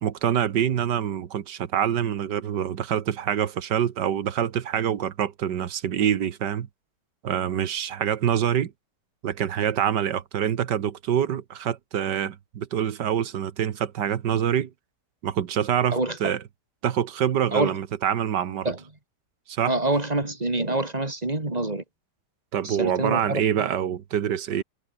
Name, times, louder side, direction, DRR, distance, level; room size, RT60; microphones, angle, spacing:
voice 1, 0.0-6.7 7.2-8.7 9.2-14.7 15.2-16.4 16.8-18.7 19.5-19.7 22.5-24.6, right 9 dB, 80° right, 1.8 m, -25 dB
voice 2, 19.7-21.8 22.6-23.7, right 2 dB, 20° right, 2.8 m, -26 dB
omnidirectional pair, 1.9 m